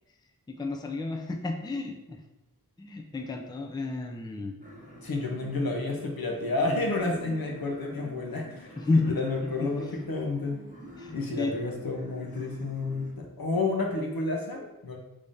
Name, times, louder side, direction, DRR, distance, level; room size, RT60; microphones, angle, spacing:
voice 1, 0.5-2.2 2.8-4.5 8.8-9.1 9.6-9.7 11.0-11.5, left 2 dB, 10° left, 3 dB, 0.4 m, -31 dB
sound 1, 4.6-13.1, right 1 dB, 20° right, 1.0 m, -47 dB
voice 2, 5.0-10.6 11.1-15.0, left 3 dB, 75° left, 0 dB, 0.7 m, -30 dB
3.5 x 3.3 x 2.6 m, 0.96 s
wide cardioid pair, 55°, 36 cm